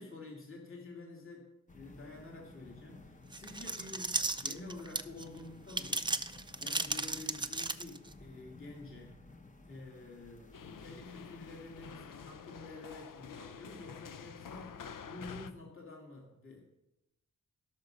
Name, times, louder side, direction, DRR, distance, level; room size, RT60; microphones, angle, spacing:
voice 1, 0.0-6.2 6.6-9.2 9.6-16.6, left 2 dB, 40° left, -2 dB, 2.7 m, -49 dB
sound 1, 1.7-11.9, left 2 dB, 25° left, 1.0 m, -56 dB
sound 2, 3.3-5.2 5.7-8.1, right 3 dB, 15° right, 0.5 m, -35 dB
sound 3, 10.5-15.5, left 6 dB, 85° left, 0.7 m, -48 dB
16.5 x 6.7 x 5.3 m, 0.93 s
wide cardioid pair, 130°, 32 cm